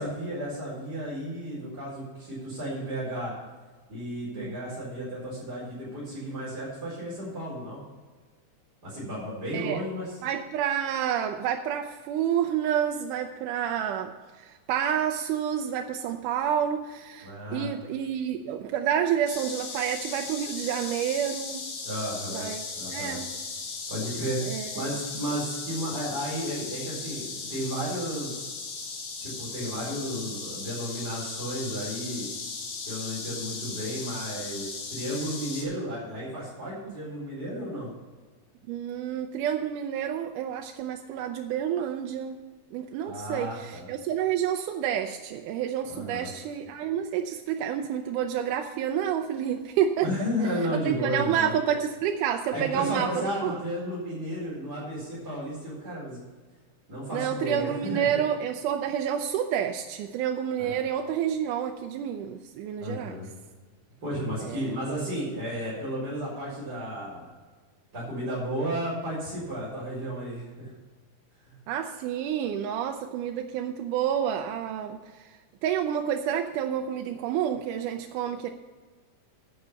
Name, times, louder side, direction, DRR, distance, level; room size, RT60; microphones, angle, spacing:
voice 1, 0.0-3.3 3.9-7.8 8.8-10.2 17.2-17.7 21.8-22.5 22.7-23.2 23.9-24.4 24.7-28.5 29.2-32.3 32.9-37.9 43.0-43.9 45.9-46.3 50.0-51.5 52.5-56.2 56.9-58.1 60.6-60.8 62.8-63.3 64.0-67.2 67.9-70.7 71.4-71.6, equal, 30° right, -9 dB, 4.8 m, -33 dB
voice 2, 10.2-21.7 22.3-22.6 22.9-23.3 24.4-24.9 38.7-42.4 42.7-50.1 50.9-53.5 57.1-63.2 64.4-64.7 71.7-75.3 75.6-78.5, right 9 dB, 85° right, 5 dB, 2.2 m, -29 dB
sound 1, 19.3-35.7, left 4 dB, 90° left, 3.4 m, -37 dB
11.0 x 8.0 x 5.6 m, 1.4 s
omnidirectional pair, 3.6 m